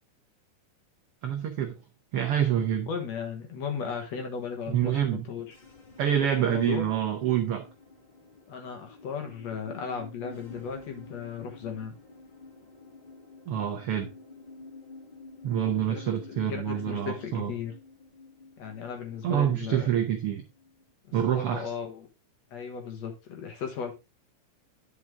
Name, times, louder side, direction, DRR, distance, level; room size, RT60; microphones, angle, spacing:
voice 1, 1.2-1.8 2.1-2.9 4.7-5.2 6.0-7.7 13.5-14.1 15.4-17.5 19.2-20.4 21.1-21.7, right 9 dB, 75° right, 1.3 m, -27 dB
voice 2, 2.9-5.6 6.2-6.9 8.5-11.9 15.7-17.7 18.6-19.9 21.1-22.1 22.5-23.9, left 6 dB, 60° left, 2.5 m, -36 dB
sound 1, 5.5-20.9, left 3 dB, 30° left, 0.8 m, -50 dB
10.0 x 5.4 x 3.6 m
omnidirectional pair, 3.7 m